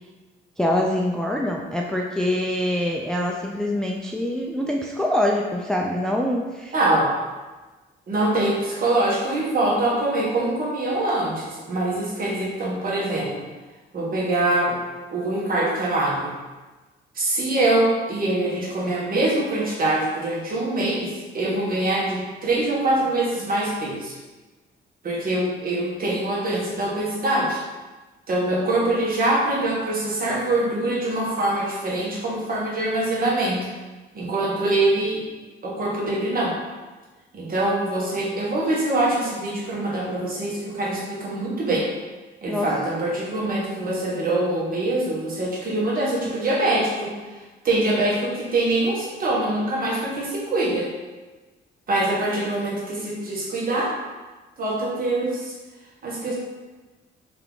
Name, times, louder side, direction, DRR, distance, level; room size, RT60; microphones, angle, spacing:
voice 1, 0.6-6.7 42.5-42.7 56.3-56.4, left 1 dB, 5° left, 0 dB, 0.4 m, -24 dB
voice 2, 6.7-7.1 8.1-13.4 13.9-14.8 15.1-16.3 17.1-24.1 25.0-27.6 28.3-33.7 34.1-35.2 35.6-36.6 37.3-41.9 42.4-47.1 47.6-50.9 51.9-53.9 54.6-55.5 56.0-56.3, right 2 dB, 45° right, -5 dB, 1.5 m, -24 dB
3.5 x 3.4 x 3.7 m, 1.2 s
cardioid pair, 90°, 20 cm